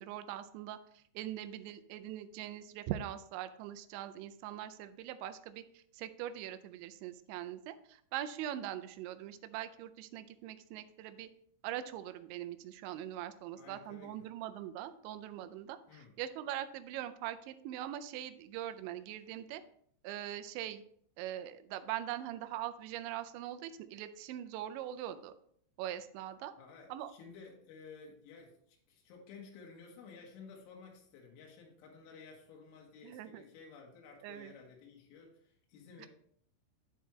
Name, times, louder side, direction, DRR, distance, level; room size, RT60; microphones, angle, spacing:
voice 1, 0.0-11.3 11.6-19.6 20.0-20.8 21.2-25.3 25.8-26.5 26.9-27.1 33.0-33.5 34.2-34.5 36.0-36.1, right 12 dB, 85° right, 11 dB, 2.8 m, -42 dB
voice 2, 13.6-14.3 15.9-16.1 26.6-36.1, left 5 dB, 85° left, -1 dB, 3.8 m, -54 dB
12.0 x 4.6 x 3.1 m, 0.64 s
omnidirectional pair, 5.4 m